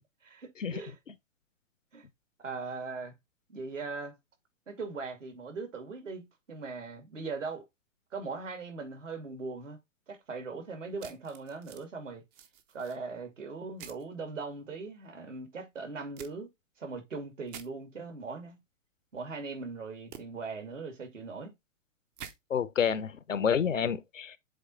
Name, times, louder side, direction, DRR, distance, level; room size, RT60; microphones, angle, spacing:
voice 1, 0.2-1.0 1.9-2.1 2.4-3.1 3.5-4.1 4.7-7.6 8.1-9.8 10.1-12.2 12.7-16.5 16.8-18.6 19.1-21.5, right 4 dB, 80° right, 2.6 m, -40 dB
sound 1, 11.0-11.8 12.3-13.0 13.8-14.0 16.2-16.3 17.5-17.7 20.1-20.2 22.2-22.3, right 8 dB, 15° right, 0.4 m, -47 dB
voice 2, 22.5-24.4, left 7 dB, 85° left, 0.9 m, -29 dB
7.7 x 3.2 x 4.1 m
hypercardioid pair, 125°, 37 cm